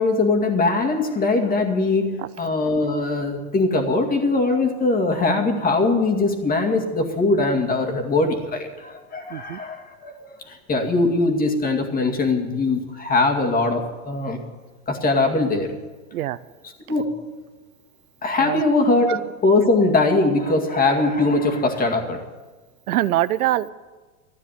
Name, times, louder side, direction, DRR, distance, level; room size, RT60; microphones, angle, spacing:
voice 1, 0.0-14.4 14.9-15.7 16.9-17.2 18.2-22.2, left 3 dB, 20° left, 4 dB, 2.1 m, -21 dB
voice 2, 9.3-9.6 16.1-16.4 18.4-18.6 19.1-19.2 22.9-23.7, right 14 dB, 80° right, 16 dB, 0.7 m, -23 dB
13.0 x 9.7 x 9.3 m, 1.3 s
hypercardioid pair, 115°, 43 cm